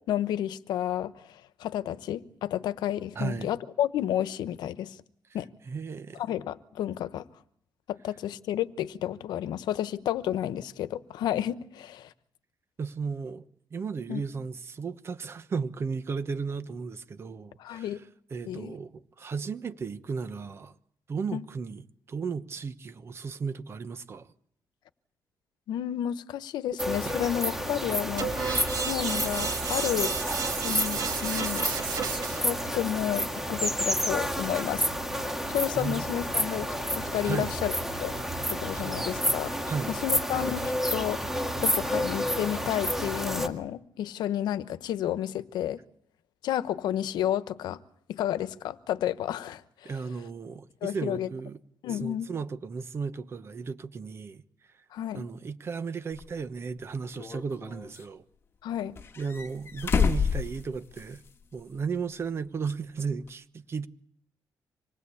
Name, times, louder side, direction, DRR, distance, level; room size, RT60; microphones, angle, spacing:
voice 1, 0.1-5.0 5.3-5.5 6.1-7.3 7.9-12.1 14.1-14.2 17.6-18.0 18.5-18.8 21.3-21.4 25.7-28.3 28.7-30.1 30.6-31.7 32.4-34.9 35.5-37.7 38.0-38.1 38.5-45.8 46.4-47.8 48.1-49.9 50.8-51.3 51.8-52.3 54.9-55.3 58.6-58.9, left 11 dB, 90° left, 1.0 m, -31 dB
voice 2, 3.1-3.5 5.7-6.2 12.8-13.4 13.7-18.0 18.3-20.7 21.1-24.3 27.0-27.2 35.7-36.0 37.2-37.5 38.7-38.9 39.6-39.9 49.8-51.6 51.9-54.4 55.1-58.2 59.2-61.2 61.5-63.9, right 5 dB, 35° right, 1.1 m, -35 dB
sound 1, 26.8-43.5, equal, 5° right, 1.9 m, -30 dB
sound 2, 28.2-32.6, right 6 dB, 75° right, 3.0 m, -32 dB
sound 3, 56.2-56.3 57.1-58.0 58.9-61.3 61.6-61.7 63.3-63.4, left 6 dB, 35° left, 1.7 m, -29 dB
26.0 x 19.5 x 8.5 m
cardioid pair, 130°, 7 cm